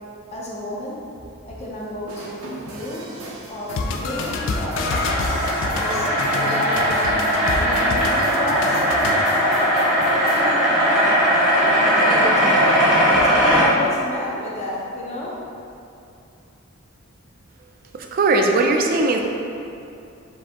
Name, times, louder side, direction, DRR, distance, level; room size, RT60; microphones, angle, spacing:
voice 1, 0.3-1.0 1.5-3.1 3.5-5.1 5.7-9.2 10.1-10.5 11.9-15.3, left 1 dB, 30° left, -5 dB, 0.6 m, -31 dB
sound 1, 2.1-10.4, right 2 dB, 85° right, 0.6 m, -39 dB
sound 2, 3.7-9.2, left 3 dB, 60° left, 0.3 m, -27 dB
sound 3, 4.2-13.7, equal, 5° right, 0.8 m, -19 dB
voice 2, 17.9-19.2, right 2 dB, 45° right, 3 dB, 0.3 m, -19 dB
4.7 x 2.7 x 3.5 m, 2.6 s
head